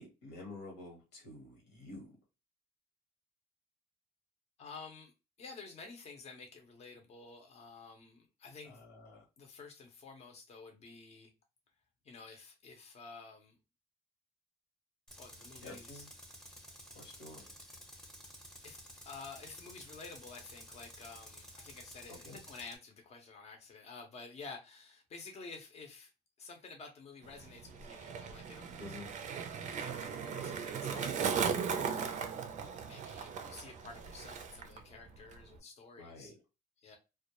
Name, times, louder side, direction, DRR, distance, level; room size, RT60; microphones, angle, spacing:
voice 1, 0.0-2.1 8.7-9.2 15.6-16.1 16.9-17.5 22.2-22.4 28.8-29.1 36.0-36.4, left 2 dB, 85° left, 1.1 m, -49 dB
voice 2, 4.6-5.1 5.4-8.8 9.4-11.3 12.0-13.5 15.2-16.0 18.6-18.8 19.1-26.1 26.4-29.0 29.8-31.9 32.6-36.3 36.8-37.0, left 4 dB, 40° left, 0.7 m, -51 dB
Tools, 15.1-22.8, equal, 5° left, 0.7 m, -53 dB
Skateboard, 27.2-34.8 35.1-35.6, right 6 dB, 45° right, 0.4 m, -38 dB
2.2 x 2.0 x 2.8 m
cardioid pair, 110°, 17 cm